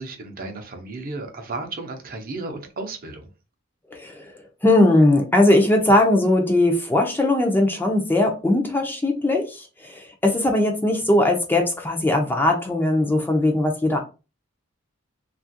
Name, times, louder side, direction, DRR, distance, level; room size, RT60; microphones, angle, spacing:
voice 1, 0.0-3.3, right 3 dB, 45° right, 4 dB, 0.6 m, -34 dB
voice 2, 3.9-4.3 4.6-14.0, left 1 dB, 10° left, 2 dB, 0.4 m, -19 dB
2.9 x 2.4 x 2.7 m, 0.31 s
head